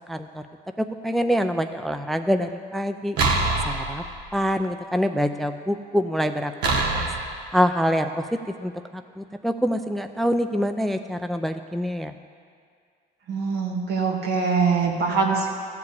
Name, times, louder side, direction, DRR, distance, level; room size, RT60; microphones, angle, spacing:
voice 1, 0.1-0.4 0.8-3.2 3.7-4.0 4.3-6.5 6.9-7.1 7.5-8.1 8.6-8.7 9.2-12.1, equal, ahead, 8 dB, 0.4 m, -25 dB
sound 1, 3.2-4.4 6.6-7.4, right 3 dB, 90° right, 1.5 m, -24 dB
voice 2, 13.3-15.5, right 5 dB, 75° right, 0 dB, 1.9 m, -23 dB
14.5 x 4.9 x 8.2 m, 2.2 s
cardioid pair, 110°, 17 cm